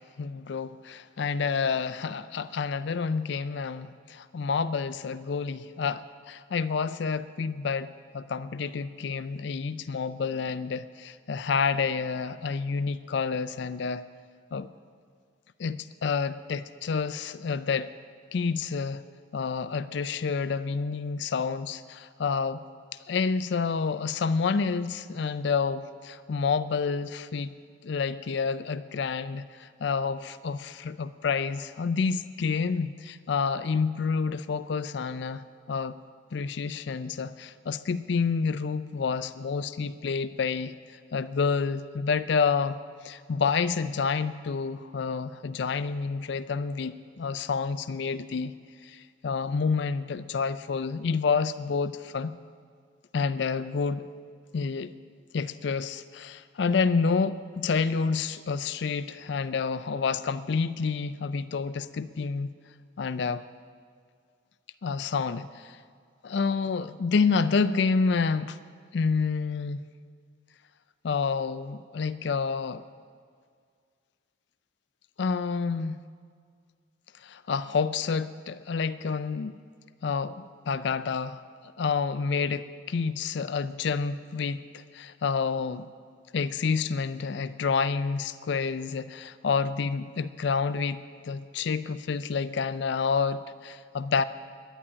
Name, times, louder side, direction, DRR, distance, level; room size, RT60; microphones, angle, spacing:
voice 1, 0.2-14.0 14.5-14.7 15.6-17.9 18.3-19.0 19.3-22.6 23.1-27.5 27.8-36.0 36.3-40.8 41.1-48.5 48.8-52.4 53.1-54.1 54.5-54.9 55.3-62.5 63.0-63.4 64.8-65.8 66.2-68.6 68.9-69.8 71.0-72.8 75.2-76.0 77.2-79.6 80.0-81.4 81.8-85.9 86.3-94.2, left 5 dB, 60° left, 13 dB, 0.4 m, -29 dB
11.5 x 10.0 x 8.5 m, 2.1 s
head